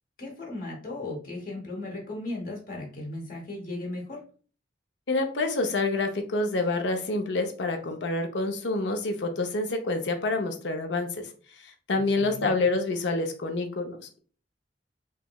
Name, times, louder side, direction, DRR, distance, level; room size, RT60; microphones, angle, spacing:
voice 1, 0.2-4.2 11.9-12.5, left 2 dB, 50° left, -1 dB, 0.8 m, -36 dB
voice 2, 5.1-11.3 11.6-14.2, left 2 dB, 75° left, 5 dB, 0.5 m, -27 dB
3.1 x 2.9 x 2.2 m, 0.40 s
head